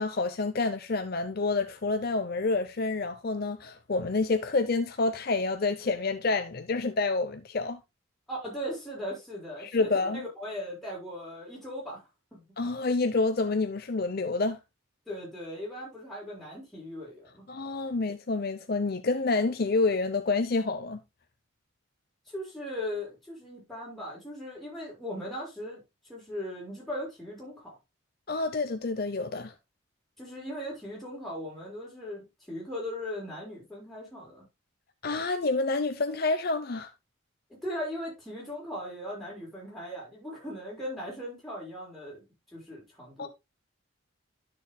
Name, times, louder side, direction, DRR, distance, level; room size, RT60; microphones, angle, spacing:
voice 1, 0.0-7.8 9.6-10.2 12.6-14.6 17.5-21.0 28.3-29.5 35.0-36.9 43.2-43.3, left 3 dB, 50° left, 0.6 m, -28 dB
voice 2, 8.3-12.0 12.3-12.4 15.1-17.5 22.3-25.8 26.1-27.8 30.2-34.4 37.6-42.2 42.5-43.3, equal, ahead, 5.9 m, -38 dB
12.5 x 6.9 x 2.2 m
head